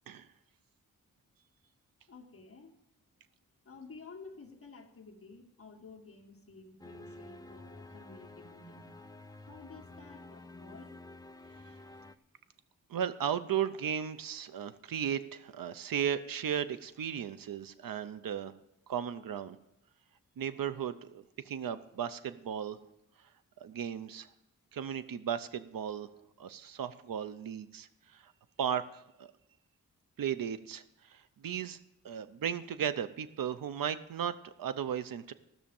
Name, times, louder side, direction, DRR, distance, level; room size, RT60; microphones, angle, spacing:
voice 1, 2.1-2.7 3.7-9.0 9.4-10.9, left 4 dB, 45° left, 0 dB, 1.9 m, -52 dB
sound 1, 6.8-12.1, left 2 dB, 10° left, 0.5 m, -51 dB
voice 2, 12.9-18.5 18.9-19.6 20.4-22.8 23.6-24.3 24.7-26.1 26.4-28.3 28.6-29.3 30.2-31.8 32.0-35.3, right 8 dB, 85° right, 12 dB, 0.7 m, -36 dB
15.0 x 6.3 x 7.1 m, 0.85 s
wide cardioid pair, 130°, 33 cm